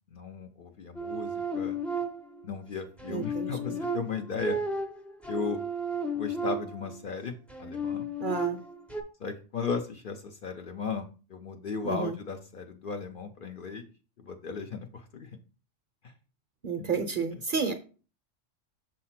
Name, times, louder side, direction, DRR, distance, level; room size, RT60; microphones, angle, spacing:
voice 1, 0.1-1.8 2.4-4.6 5.3-5.6 6.1-8.1 9.2-13.9 14.2-15.3 16.0-16.1 16.8-16.9, left 5 dB, 50° left, 5 dB, 0.7 m, -36 dB
sound 1, 1.0-2.5 3.0-7.0 7.5-9.0, right 1 dB, ahead, 0.4 m, -33 dB
voice 2, 3.1-3.8 8.2-8.6 11.8-12.2 16.6-17.7, right 5 dB, 50° right, 7 dB, 0.7 m, -31 dB
6.4 x 2.8 x 5.7 m, 0.36 s
omnidirectional pair, 1.3 m